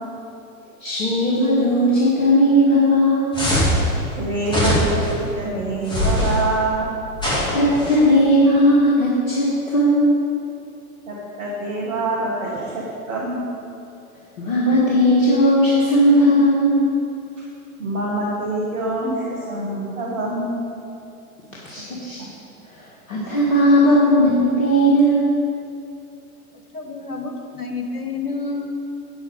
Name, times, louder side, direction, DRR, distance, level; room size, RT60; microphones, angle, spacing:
voice 1, 0.8-3.4 7.5-10.2 14.4-16.8 21.5-22.2 22.6-25.3, equal, 60° left, -6 dB, 1.8 m, -17 dB
sound 1, 3.3-3.8 4.5-5.1 5.9-6.4 7.2-8.0, equal, 10° left, 2.5 m, -21 dB
voice 2, 4.2-5.1 5.4-7.0 11.1-13.4 17.8-20.6 22.2-22.3, right 2 dB, 60° right, -4 dB, 1.8 m, -25 dB
voice 3, 26.5-28.8, left 3 dB, 90° left, 3 dB, 1.2 m, -29 dB
8.7 x 8.1 x 5.0 m, 2.6 s
figure-of-eight pair, 95°, 44 cm